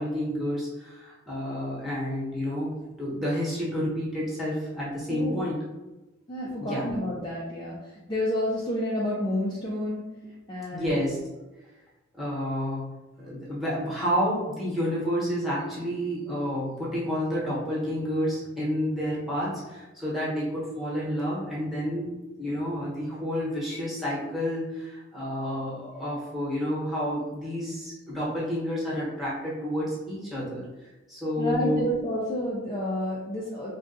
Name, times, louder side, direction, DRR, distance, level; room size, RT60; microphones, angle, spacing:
voice 1, 0.0-2.7 3.0-5.6 6.7-6.8 10.7-11.2 12.2-12.9 13.2-22.1 22.4-31.9, equal, ahead, -8 dB, 1.0 m, -30 dB
voice 2, 5.1-5.5 6.3-10.1 10.5-11.0 31.4-33.7, left 1 dB, 20° left, -6 dB, 0.4 m, -30 dB
3.7 x 2.2 x 2.6 m, 1.1 s
head